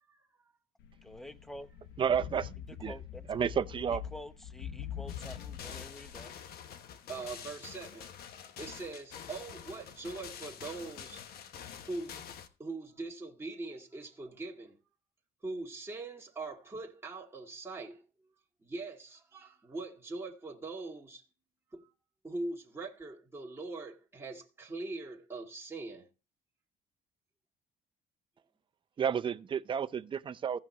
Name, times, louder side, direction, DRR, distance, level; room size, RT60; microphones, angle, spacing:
sound 1, 0.8-6.2, left 10 dB, 85° left, 0.8 m, -44 dB
voice 1, 1.0-1.7 2.8-3.3 3.9-6.3, left 1 dB, ahead, 0.8 m, -48 dB
voice 2, 2.0-2.5 2.8-2.9 3.3-4.0 29.0-30.6, right 8 dB, 30° right, 0.5 m, -31 dB
sound 2, 5.1-12.5, left 8 dB, 65° left, 1.1 m, -47 dB
voice 3, 7.1-8.1 8.6-11.2 11.9-12.2 12.6-14.8 15.4-18.0 18.6-21.2 21.7-21.9 22.2-26.1, right 3 dB, 15° right, 1.8 m, -42 dB
16.0 x 5.7 x 3.1 m
cardioid pair, 110°, 17 cm